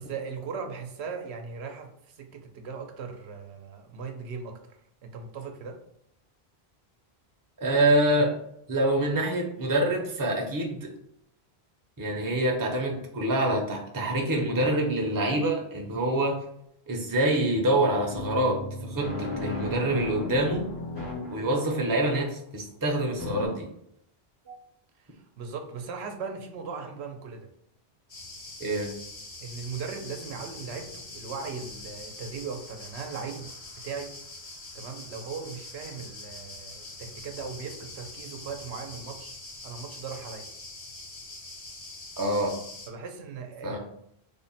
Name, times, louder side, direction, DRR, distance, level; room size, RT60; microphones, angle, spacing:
voice 1, 0.0-4.8 5.0-5.8 24.4-24.7 25.0-27.5 29.4-33.5 33.8-34.1 34.7-39.4 39.6-40.5 42.9-43.8, right 5 dB, 85° right, 4 dB, 0.9 m, -38 dB
voice 2, 7.6-8.3 8.7-10.9 12.0-16.4 16.9-20.6 21.3-23.7 28.6-28.9 42.2-42.5 43.6-43.8, right 1 dB, 25° right, 0 dB, 0.6 m, -26 dB
sound 1, 18.1-22.1 23.2-23.5, left 3 dB, 90° left, 1.5 m, -35 dB
sound 2, 28.1-42.9, left 2 dB, 30° left, 0.6 m, -44 dB
3.4 x 2.1 x 4.0 m, 0.73 s
omnidirectional pair, 1.1 m